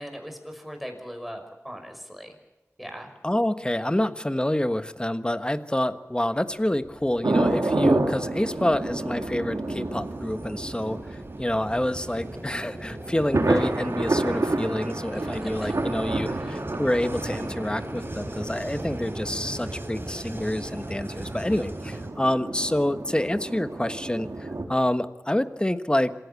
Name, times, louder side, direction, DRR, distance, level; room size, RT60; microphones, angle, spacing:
voice 1, 0.0-2.3 2.8-3.1 15.2-15.8 16.4-16.6, equal, ahead, 4 dB, 5.6 m, -40 dB
voice 2, 3.2-26.1, left 1 dB, 15° left, 10 dB, 1.3 m, -27 dB
Vehicle, 6.5-22.1, right 1 dB, 45° right, 5.0 m, -38 dB
sound 1, 7.2-24.7, right 2 dB, 80° right, 2.9 m, -30 dB
26.5 x 16.0 x 8.3 m, 1.1 s
wide cardioid pair, 65°, 5 cm